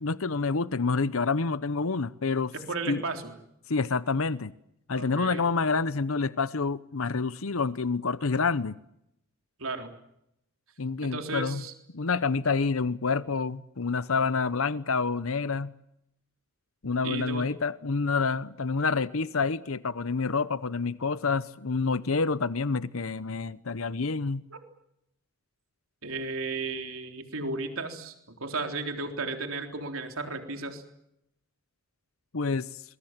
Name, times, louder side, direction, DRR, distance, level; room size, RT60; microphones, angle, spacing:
voice 1, 0.0-2.5 2.9-3.0 3.7-4.5 4.9-8.7 10.8-11.6 11.9-15.7 16.8-24.4 32.3-32.8, left 4 dB, 80° left, 0.9 m, -28 dB
voice 2, 2.5-3.3 4.9-5.5 9.6-9.9 11.0-11.7 17.0-17.5 24.5-24.6 26.0-28.1 28.4-30.8, right 3 dB, 80° right, 3.8 m, -34 dB
27.0 x 22.5 x 7.5 m
head